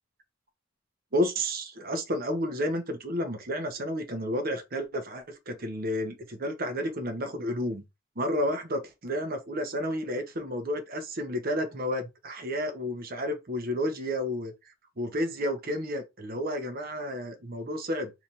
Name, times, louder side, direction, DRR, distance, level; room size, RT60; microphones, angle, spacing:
voice 1, 1.1-7.8 8.2-14.5 15.0-18.1, equal, 50° right, 0.9 m, -31 dB
3.3 x 2.9 x 4.0 m
head